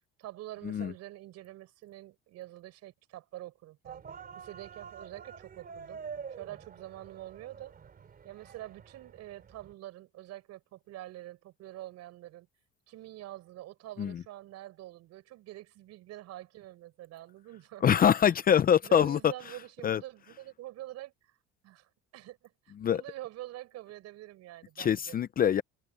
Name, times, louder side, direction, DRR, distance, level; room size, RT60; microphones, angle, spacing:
voice 1, 0.2-4.0 4.4-6.0 6.3-7.7 8.2-12.5 12.9-17.9 18.8-21.1 21.6-25.2, right 15 dB, 60° right, 5.7 m, -46 dB
sound 1, 3.9-9.7, right 6 dB, 30° right, 4.2 m, -47 dB
voice 2, 17.8-19.3 19.8-20.0 22.8-23.0 24.8-25.6, left 9 dB, 30° left, 0.7 m, -24 dB
open air
cardioid pair, 140°, 30 cm